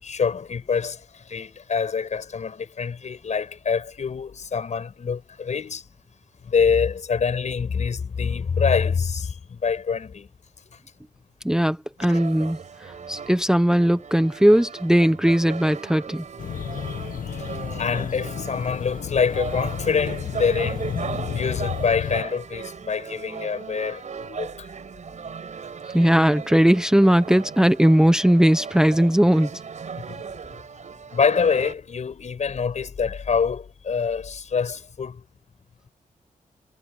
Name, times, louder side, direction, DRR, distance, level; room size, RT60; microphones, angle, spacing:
voice 1, 0.0-5.8 6.4-10.3 12.0-12.2 17.4-20.8 21.3-24.7 30.0-30.2 31.1-35.2, left 6 dB, 60° left, 5.9 m, -25 dB
voice 2, 11.4-12.6 13.1-16.2 21.1-21.2 25.9-29.5, equal, 5° right, 1.0 m, -18 dB
sound 1, 12.0-31.7, right 6 dB, 60° right, 4.6 m, -37 dB
sound 2, 16.4-22.2, left 9 dB, 80° left, 1.4 m, -32 dB
cardioid pair, 95°, 14 cm